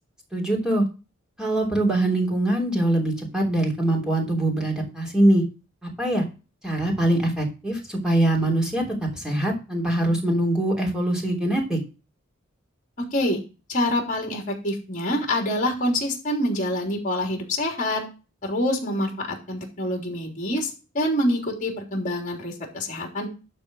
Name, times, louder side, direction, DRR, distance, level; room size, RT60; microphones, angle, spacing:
voice 1, 0.3-0.8 1.4-5.4 6.0-6.2 6.6-11.8, right 1 dB, 5° right, -2 dB, 3.1 m, -23 dB
voice 2, 13.0-13.4 13.7-18.0 18.4-23.3, left 1 dB, 40° left, 1 dB, 3.3 m, -26 dB
11.5 x 4.4 x 6.1 m, 0.31 s
head